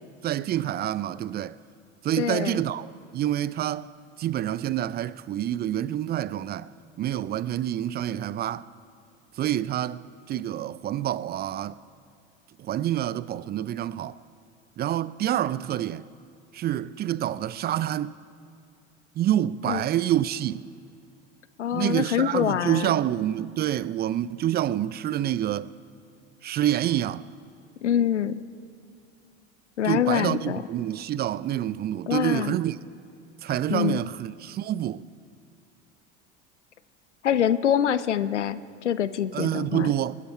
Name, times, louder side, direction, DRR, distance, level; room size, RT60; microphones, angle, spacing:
voice 1, 0.2-1.6 2.0-3.9 4.2-6.7 7.0-8.7 9.4-11.8 12.6-14.2 14.8-16.1 16.5-18.1 19.2-20.7 21.7-25.7 26.4-27.3 29.8-32.8 33.4-35.1 39.3-40.2, right 12 dB, 30° right, 0.4 m, -27 dB
voice 2, 2.2-2.6 19.7-19.8 21.6-22.9 27.8-28.4 29.8-30.6 32.1-32.6 33.7-34.0 37.2-39.9, left 9 dB, 90° left, 0.6 m, -25 dB
26.5 x 9.9 x 4.4 m
hypercardioid pair, 75°, 34 cm